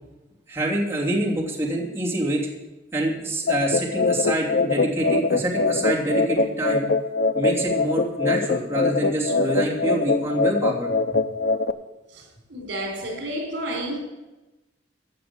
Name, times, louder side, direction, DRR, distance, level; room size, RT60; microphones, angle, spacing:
voice 1, 0.5-2.4 2.9-6.9 7.3-11.2, right 1 dB, 15° right, 2.9 m, -26 dB
sound 1, 3.5-11.7, left 3 dB, 60° left, 0.6 m, -23 dB
voice 2, 12.1-14.0, right 1 dB, 70° right, 4.2 m, -31 dB
15.5 x 6.0 x 8.7 m
head